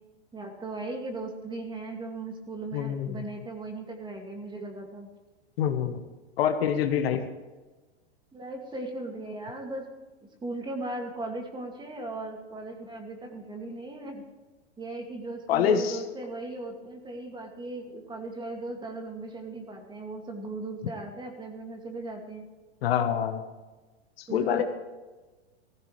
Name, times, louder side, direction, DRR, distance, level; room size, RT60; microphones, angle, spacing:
voice 1, 0.3-5.1 8.3-9.9 10.4-14.2 14.8-22.4 24.3-24.6, right 2 dB, 15° right, 2 dB, 2.4 m, -37 dB
voice 2, 2.7-3.2 5.6-6.0 6.4-7.2 15.5-16.0 22.8-23.4 24.2-24.6, left 8 dB, 60° left, 7 dB, 1.5 m, -25 dB
16.5 x 15.5 x 3.4 m, 1.2 s
hypercardioid pair, 125°, 33 cm